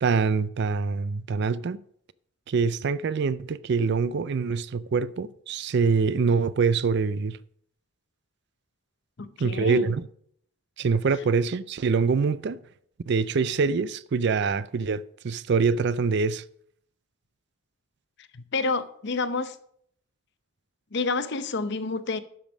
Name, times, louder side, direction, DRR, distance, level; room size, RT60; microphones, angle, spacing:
voice 1, 0.0-1.8 2.5-7.4 9.4-10.1 10.8-12.6 13.1-16.4, right 5 dB, 55° right, 0.4 m, -25 dB
voice 2, 9.2-9.9 18.3-19.6 20.9-22.2, left 3 dB, 55° left, 0.7 m, -29 dB
12.0 x 5.3 x 6.1 m
head